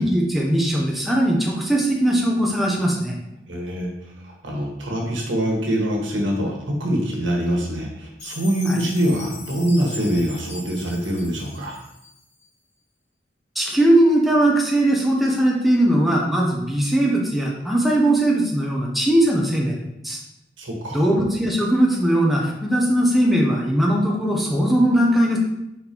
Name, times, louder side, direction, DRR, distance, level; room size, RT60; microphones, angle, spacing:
voice 1, 0.0-3.1 8.7-8.8 13.6-20.2 20.9-25.4, right 1 dB, ahead, -3 dB, 0.7 m, -19 dB
voice 2, 3.5-11.8 20.6-21.0, equal, 80° right, -1 dB, 1.5 m, -24 dB
Chime, 8.2-12.4, left 2 dB, 35° left, 1.2 m, -40 dB
5.1 x 4.2 x 4.4 m, 0.85 s
head